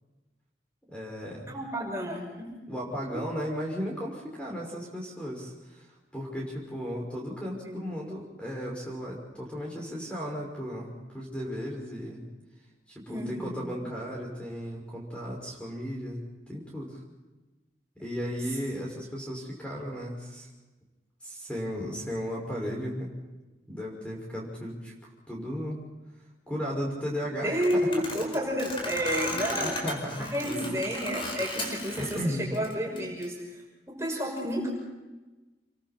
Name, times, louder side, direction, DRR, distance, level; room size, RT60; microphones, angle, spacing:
voice 1, 0.9-1.5 2.7-5.9 6.1-12.2 12.9-16.2 16.5-17.0 18.0-20.5 21.2-23.1 23.7-24.9 25.3-25.8 26.5-27.7 29.6-30.6 32.0-32.4, equal, 5° left, -2 dB, 5.9 m, -35 dB
voice 2, 1.5-2.5 3.1-3.2 7.6-8.1 13.1-13.9 27.3-29.9 30.2-33.6 33.9-34.7, equal, 15° right, -1 dB, 6.0 m, -31 dB
sound 1, 27.5-32.2 32.5-33.2, left 2 dB, 30° left, 4.9 m, -36 dB
29.0 x 23.5 x 4.5 m, 1.1 s
head